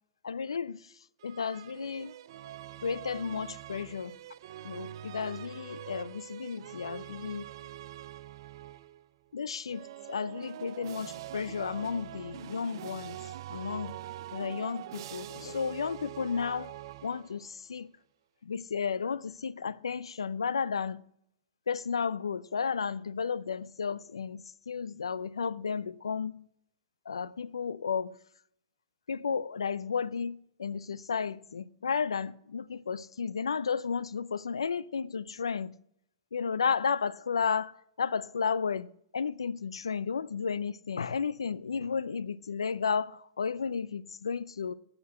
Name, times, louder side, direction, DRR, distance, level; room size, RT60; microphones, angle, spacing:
voice 1, 0.2-0.8 1.2-2.1 2.8-4.2 4.6-7.5 9.3-13.2 13.5-14.0 14.3-16.7 17.0-17.9 18.4-21.0 21.7-26.4 27.1-28.2 29.1-35.7 36.3-44.7, left 6 dB, 90° left, 0.5 m, -33 dB
sound 1, 1.2-9.1 9.7-17.6, right 13 dB, 60° right, 0.5 m, -44 dB
9.6 x 8.0 x 8.6 m
hypercardioid pair, 120°, 3 cm